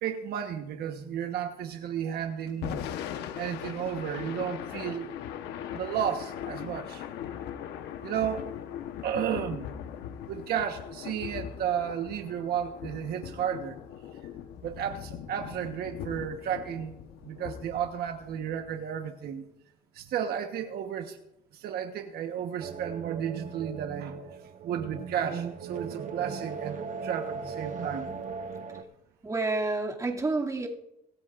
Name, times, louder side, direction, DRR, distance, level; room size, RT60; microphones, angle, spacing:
voice 1, 0.0-2.8 3.4-5.1 5.7-7.1 8.0-8.4 9.0-9.7 10.3-13.8 14.6-17.0 17.2-19.5 19.9-21.2 21.5-24.2 24.6-28.1, right 9 dB, 70° right, 5 dB, 1.3 m, -33 dB
Thunder / Rain, 2.5-18.7, left 9 dB, 90° left, 1.2 m, -40 dB
sound 1, 22.6-28.8, right 5 dB, 45° right, 1.2 m, -38 dB
voice 2, 29.2-30.7, right 3 dB, 20° right, -2 dB, 2.5 m, -29 dB
24.5 x 13.5 x 2.6 m, 0.87 s
cardioid pair, 110°, 17 cm